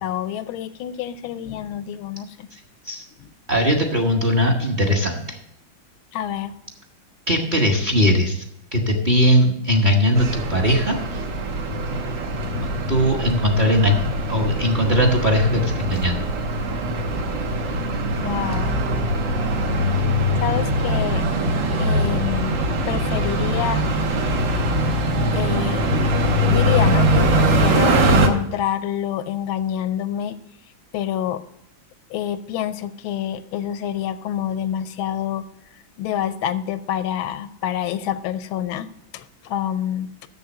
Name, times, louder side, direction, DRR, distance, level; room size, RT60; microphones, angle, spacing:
voice 1, 0.0-2.5 3.2-3.3 6.1-6.6 18.2-18.8 20.4-21.2 21.8-22.6 22.9-23.8 25.3-25.8 26.5-30.4 30.9-31.4 32.1-35.5 36.0-40.1, left 10 dB, 90° left, 13 dB, 1.4 m, -27 dB
voice 2, 3.5-5.4 7.3-8.4 8.7-11.0 12.6-14.0 14.3-16.2, equal, 35° right, 2 dB, 0.8 m, -19 dB
sound 1, 10.2-28.3, right 1 dB, 70° right, 1.8 m, -22 dB
7.0 x 6.8 x 7.8 m, 0.81 s
omnidirectional pair, 2.2 m